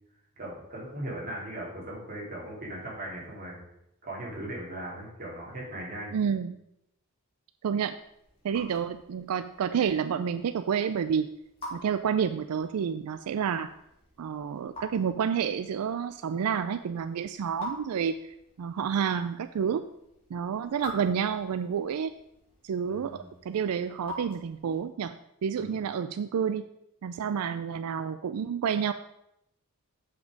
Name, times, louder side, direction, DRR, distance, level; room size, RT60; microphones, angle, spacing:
voice 1, 0.4-3.6 4.0-6.2 22.9-23.3 25.6-25.7, right 1 dB, 40° right, -4 dB, 3.2 m, -38 dB
voice 2, 6.1-6.6 7.6-8.0 8.4-11.3 11.7-13.7 14.2-18.1 18.6-19.8 20.3-22.1 22.6-25.1 25.4-26.6 27.0-28.9, right 7 dB, 85° right, 11 dB, 0.4 m, -29 dB
Raindrop / Drip, 7.8-25.0, left 1 dB, 25° left, 3.4 m, -48 dB
7.4 x 6.0 x 5.1 m, 0.81 s
head